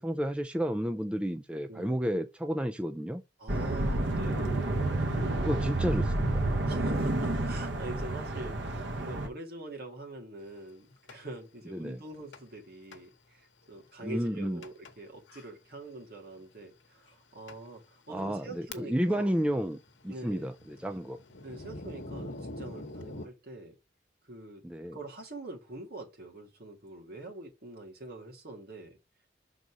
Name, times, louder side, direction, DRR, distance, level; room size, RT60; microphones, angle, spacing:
voice 1, 0.0-3.2 5.4-6.4 11.7-12.0 14.0-14.6 18.1-19.8 20.0-21.2 24.6-25.0, equal, 5° right, 0.3 m, -31 dB
voice 2, 1.7-2.0 3.4-4.6 6.6-19.3 20.1-20.5 21.4-23.7 24.2-24.6 24.9-29.0, right 2 dB, 55° right, 2.3 m, -44 dB
sound 1, 3.5-9.3, right 2 dB, 80° right, 1.0 m, -30 dB
Thunder, 11.1-11.2 12.3-12.6 12.9-13.0 13.7-13.8 14.6-14.9 15.3-15.5 16.4-16.5 17.1-17.2 17.5-17.6 18.2-19.2 19.4-23.3, left 2 dB, 80° left, 1.0 m, -44 dB
6.1 x 4.0 x 4.6 m
head